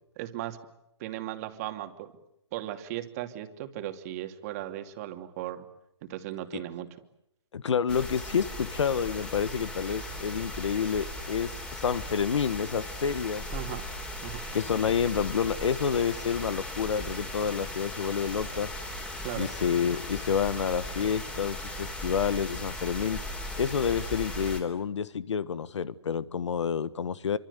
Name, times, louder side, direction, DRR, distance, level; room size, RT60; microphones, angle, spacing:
voice 1, 0.2-0.6 1.0-2.1 2.5-5.6 6.0-6.9 13.5-13.9 14.2-14.4 19.2-19.5, right 13 dB, 30° right, 6 dB, 2.6 m, -37 dB
voice 2, 7.5-13.5 14.5-18.7 19.4-23.2 23.6-27.4, left 7 dB, 75° left, 16 dB, 1.6 m, -29 dB
sound 1, 7.9-24.6, left 1 dB, 5° left, 3.5 m, -38 dB
28.0 x 25.0 x 8.3 m, 0.80 s
hypercardioid pair, 160°, 15 cm